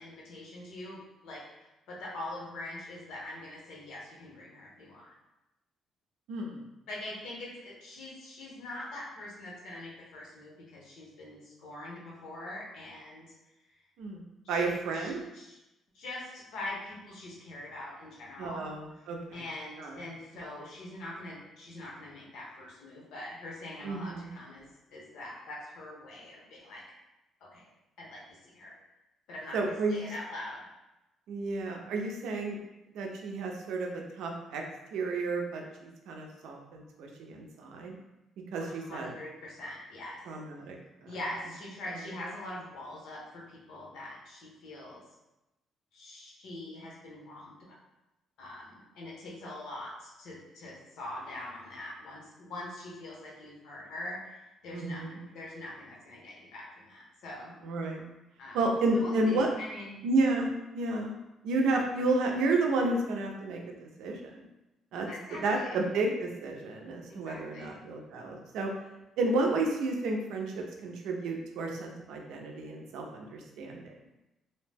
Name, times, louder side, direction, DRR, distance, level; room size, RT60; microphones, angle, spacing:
voice 1, 0.0-5.1 6.9-13.3 14.4-15.6 15.9-18.7 19.0-26.8 27.4-27.7 28.0-28.7 29.3-30.7 38.6-40.2 41.1-45.0 45.9-47.8 48.4-57.5 58.4-60.1 65.1-65.8 67.1-67.8, left 1 dB, 75° left, -4 dB, 0.9 m, -43 dB
voice 2, 6.3-6.6 14.0-14.2 14.5-15.2 18.4-19.4 19.8-20.0 23.8-24.3 29.5-30.1 31.3-32.6 32.9-34.6 34.9-38.0 38.5-39.1 40.3-40.8 41.0-41.1 54.7-55.2 57.6-58.0 58.5-59.5 60.0-61.1 61.4-64.5 64.9-65.1 65.4-68.7 69.2-73.9, right 2 dB, 90° right, 1 dB, 0.5 m, -31 dB
2.7 x 2.1 x 3.3 m, 0.96 s
cardioid pair, 165°, 0 cm